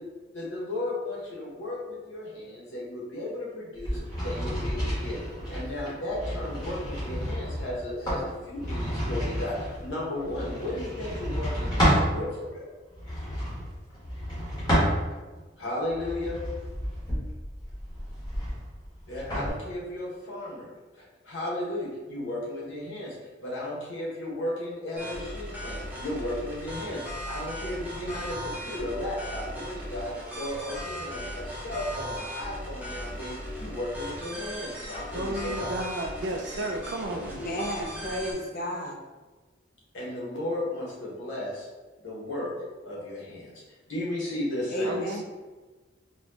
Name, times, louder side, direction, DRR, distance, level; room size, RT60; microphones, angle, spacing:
voice 1, 0.3-5.2 5.5-12.7 15.6-16.4 19.1-23.2 23.4-35.8 39.9-41.7 42.0-42.5 42.8-43.6 43.9-44.9, left 1 dB, 85° left, -5 dB, 1.1 m, -34 dB
sound 1, 3.8-12.1 12.9-15.4 15.9-19.5, equal, 20° left, 1.2 m, -30 dB
sound 2, 25.0-38.3, equal, 10° right, 0.5 m, -38 dB
voice 2, 35.1-37.4 44.8-45.2, right 1 dB, 70° right, 2 dB, 0.5 m, -33 dB
voice 3, 37.2-39.0 44.7-45.2, equal, 50° left, 0 dB, 0.5 m, -32 dB
4.1 x 2.2 x 2.7 m, 1.3 s
head